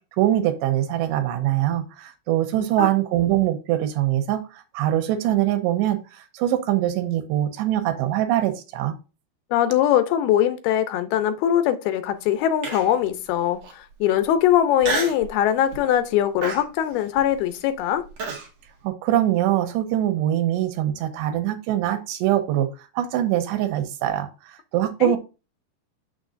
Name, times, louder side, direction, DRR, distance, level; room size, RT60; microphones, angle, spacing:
voice 1, 0.2-9.0 18.8-25.2, right 13 dB, 90° right, 3.0 m, -23 dB
voice 2, 2.6-2.9 9.5-18.0 25.0-25.2, left 11 dB, 80° left, 2.4 m, -22 dB
Human voice, 12.6-13.1 13.6-13.7 14.8-15.3 15.7-16.0 16.4-18.5, right 4 dB, 50° right, 2.3 m, -30 dB
7.1 x 6.5 x 2.5 m
omnidirectional pair, 4.9 m